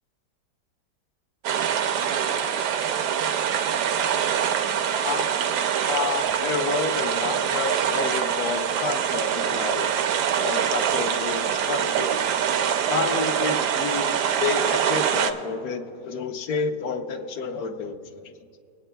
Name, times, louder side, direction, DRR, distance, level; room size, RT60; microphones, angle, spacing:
sound 1, 1.4-15.3, right 8 dB, 80° right, 1.2 m, -24 dB
voice 1, 5.9-9.9 10.4-12.3 12.9-18.3, left 5 dB, 65° left, 4 dB, 1.1 m, -30 dB
22.0 x 8.9 x 2.2 m, 2.5 s
omnidirectional pair, 1.8 m